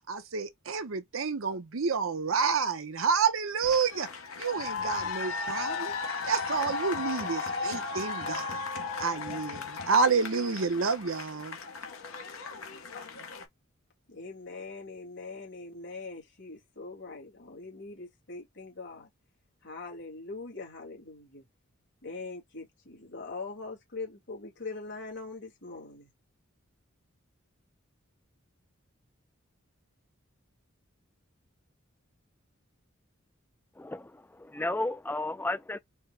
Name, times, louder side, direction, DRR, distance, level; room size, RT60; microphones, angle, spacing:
voice 1, 0.0-4.1 4.4-5.9 6.2-8.6 9.0-11.6, right 5 dB, 75° right, 0.8 m, -29 dB
sound 1, 3.6-13.5, left 4 dB, 80° left, 1.0 m, -36 dB
voice 2, 14.1-19.1 19.6-21.4 22.0-26.1, left 3 dB, 60° left, 2.0 m, -42 dB
voice 3, 33.8-35.8, left 2 dB, 10° left, 0.3 m, -33 dB
4.4 x 2.2 x 3.6 m
head